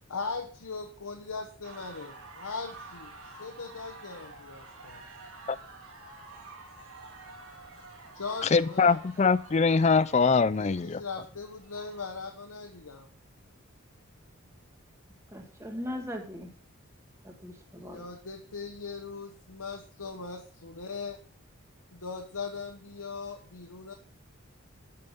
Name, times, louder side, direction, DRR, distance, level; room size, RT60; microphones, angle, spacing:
voice 1, 0.1-3.1 3.4-5.0 8.1-9.0 10.5-13.1 17.8-21.2 21.9-23.9, left 4 dB, 90° left, 3 dB, 1.2 m, -39 dB
sound 1, 1.6-12.3, right 3 dB, 85° right, 3.2 m, -49 dB
voice 2, 8.4-11.0, left 4 dB, 30° left, 18 dB, 0.3 m, -23 dB
voice 3, 15.3-16.5 17.2-18.1, left 1 dB, 10° right, 3 dB, 1.6 m, -39 dB
12.0 x 5.7 x 5.6 m, 0.42 s
head